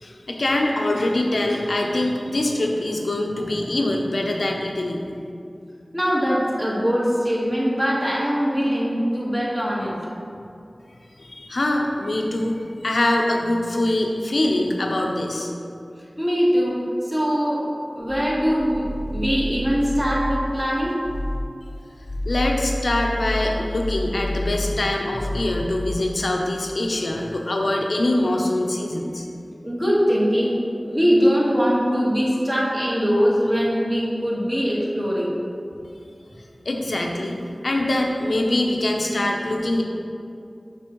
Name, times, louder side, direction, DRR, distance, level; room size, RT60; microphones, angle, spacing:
voice 1, 0.0-5.0 11.2-12.5 12.8-15.5 22.2-29.3 36.6-37.4 37.6-39.8, left 1 dB, 80° left, 1 dB, 0.7 m, -23 dB
voice 2, 5.9-9.9 16.2-16.8 17.1-17.6 17.9-18.9 19.1-20.9 29.6-30.6 30.9-35.3, equal, 25° right, -6 dB, 1.6 m, -21 dB
sound 1, 18.0-20.7 21.0-21.5 22.0-26.2, left 1 dB, 45° left, 0.4 m, -30 dB
6.8 x 6.0 x 3.1 m, 2.5 s
wide cardioid pair, 60°, 0 cm